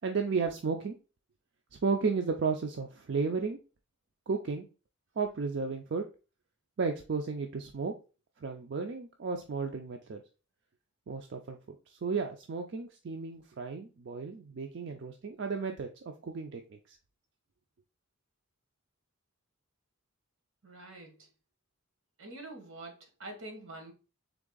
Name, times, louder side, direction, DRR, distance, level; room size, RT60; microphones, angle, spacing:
voice 1, 0.0-0.9 1.7-3.6 4.3-4.7 5.2-6.1 6.8-7.9 8.4-10.2 11.1-17.0, right 4 dB, 60° right, 0.4 m, -33 dB
voice 2, 20.6-21.3 22.2-23.9, right 2 dB, 85° right, 1.3 m, -46 dB
3.6 x 3.2 x 3.8 m
head